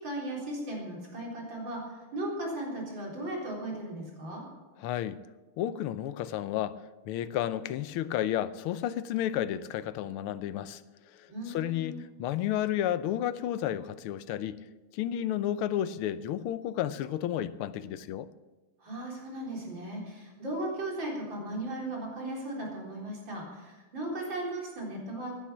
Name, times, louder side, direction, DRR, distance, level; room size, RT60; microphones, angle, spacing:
voice 1, 0.0-4.4 11.3-12.0 18.8-25.4, right 1 dB, 60° right, 4.7 m, -37 dB
voice 2, 4.8-5.2 5.6-6.8 7.1-10.8 11.5-14.6 14.9-18.3, left 11 dB, 80° left, 1.6 m, -32 dB
16.0 x 10.0 x 7.3 m
omnidirectional pair, 2.4 m